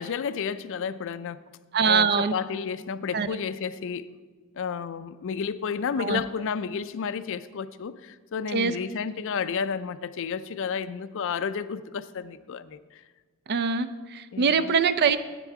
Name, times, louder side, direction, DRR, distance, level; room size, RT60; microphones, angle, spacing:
voice 1, 0.0-1.4 1.8-4.1 4.6-12.8 14.3-14.7, left 6 dB, 65° left, 14 dB, 0.4 m, -31 dB
voice 2, 1.7-2.3 3.1-3.4 6.0-6.2 8.5-8.7 13.5-15.2, right 5 dB, 50° right, 13 dB, 0.5 m, -23 dB
9.8 x 9.1 x 4.7 m, 1.4 s
head